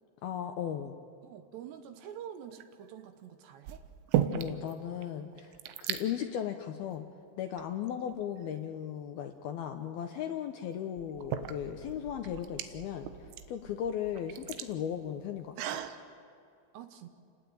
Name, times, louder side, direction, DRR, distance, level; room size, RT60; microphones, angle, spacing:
voice 1, 0.2-1.0 4.3-7.1 7.4-15.8, left 9 dB, 75° left, 6 dB, 2.4 m, -37 dB
voice 2, 1.2-3.8 16.7-17.1, right 9 dB, 70° right, 8 dB, 3.2 m, -46 dB
sound 1, 2.4-2.9 3.7-4.7 5.0-5.1 5.3-6.0 6.8-7.0 7.6-8.5 10.2-10.3 11.0-16.0, right 11 dB, 90° right, 3.7 m, -36 dB
30.0 x 18.5 x 9.1 m, 2.5 s
omnidirectional pair, 5.5 m